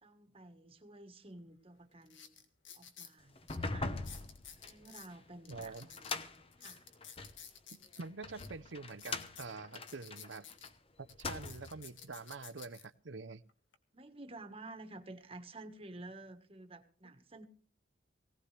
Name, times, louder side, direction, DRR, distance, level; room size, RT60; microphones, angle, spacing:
voice 1, 0.0-2.4 2.7-3.9 4.7-6.9 13.9-17.4, right 2 dB, 30° right, 7 dB, 1.4 m, -52 dB
sound 1, 1.4-1.5 2.0-3.1 3.5-3.6 4.0-5.1 5.4-8.0 8.4-8.5 8.9-10.7 11.1-12.8 13.5-13.7, left 8 dB, 75° left, 1.8 m, -53 dB
sound 2, 3.3-7.4 8.0-10.7 11.1-11.8, left 3 dB, 30° left, 0.9 m, -42 dB
voice 2, 5.5-5.9 7.7-10.5 11.0-13.4, right 4 dB, 70° right, 16 dB, 0.7 m, -46 dB
19.0 x 17.5 x 3.3 m, 0.41 s
head